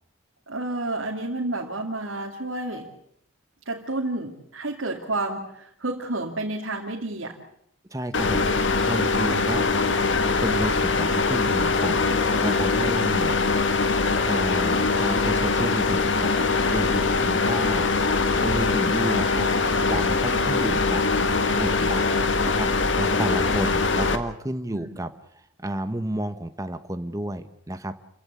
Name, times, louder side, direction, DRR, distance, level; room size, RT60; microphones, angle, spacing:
voice 1, 0.5-2.9 3.7-7.4 20.3-20.6 24.7-25.0, right 2 dB, 75° right, -1 dB, 2.7 m, -30 dB
voice 2, 7.9-8.5 8.9-10.0 10.4-12.0 12.4-13.4 14.3-17.9 18.4-19.5 19.9-21.0 21.6-22.7 23.0-25.1 25.6-28.0, right 1 dB, 15° right, 9 dB, 1.1 m, -31 dB
sound 1, 8.1-24.2, left 4 dB, 65° left, 1.7 m, -22 dB
29.0 x 16.0 x 8.3 m, 0.74 s
head